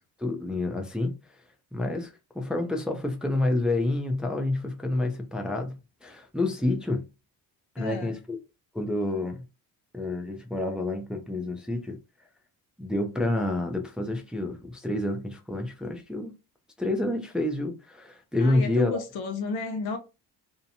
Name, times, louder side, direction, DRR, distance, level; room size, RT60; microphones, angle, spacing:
voice 1, 0.2-1.2 1.7-7.0 7.8-8.4 8.7-9.4 9.9-12.0 12.8-16.3 16.8-19.0, left 2 dB, ahead, 0.5 m, -28 dB
voice 2, 7.8-8.2 18.4-20.0, left 4 dB, 60° left, 0.7 m, -33 dB
2.7 x 2.1 x 2.7 m
supercardioid pair, 70°, 43 cm